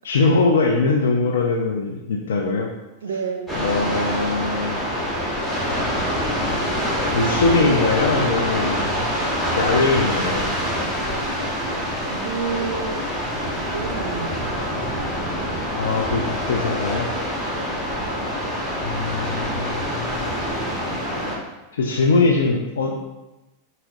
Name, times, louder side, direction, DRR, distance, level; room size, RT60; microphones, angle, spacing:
voice 1, 0.0-2.7 3.5-4.8 7.1-8.9 9.6-10.5 15.7-17.1 18.8-20.3 21.7-23.0, left 3 dB, 65° left, 0 dB, 0.5 m, -21 dB
voice 2, 3.0-3.6 12.1-13.0 13.4-14.5 17.5-17.9, right 5 dB, 65° right, 6 dB, 0.5 m, -30 dB
sound 1, 3.5-21.4, equal, 10° left, 1.1 m, -25 dB
5.6 x 3.0 x 2.7 m, 1.0 s
figure-of-eight pair, 90°, 0 cm